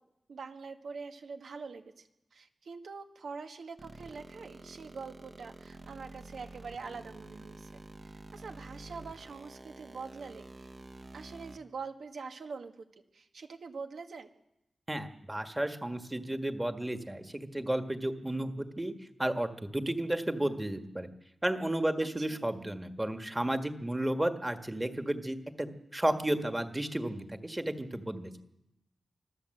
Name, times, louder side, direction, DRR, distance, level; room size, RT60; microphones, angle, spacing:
voice 1, 0.3-10.7 11.1-12.8 13.1-14.3 22.2-22.4, right 4 dB, 80° right, 5 dB, 1.6 m, -44 dB
sound 1, 3.8-11.6, right 2 dB, 35° right, 1.2 m, -49 dB
voice 2, 14.9-18.9 19.2-21.1 21.4-28.4, right 1 dB, 10° right, 7 dB, 1.5 m, -33 dB
25.0 x 14.5 x 7.8 m, 0.87 s
wide cardioid pair, 145°, 0 cm